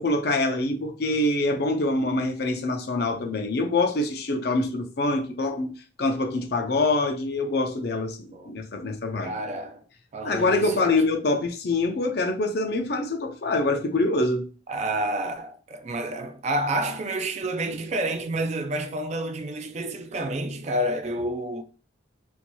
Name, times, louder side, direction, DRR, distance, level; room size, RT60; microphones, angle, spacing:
voice 1, 0.0-5.7 6.0-9.3 10.2-14.4, left 2 dB, 55° left, 0.5 m, -25 dB
voice 2, 9.2-9.8 10.1-11.0 14.7-21.6, right 1 dB, 35° right, 0.3 m, -29 dB
4.4 x 2.7 x 2.2 m
head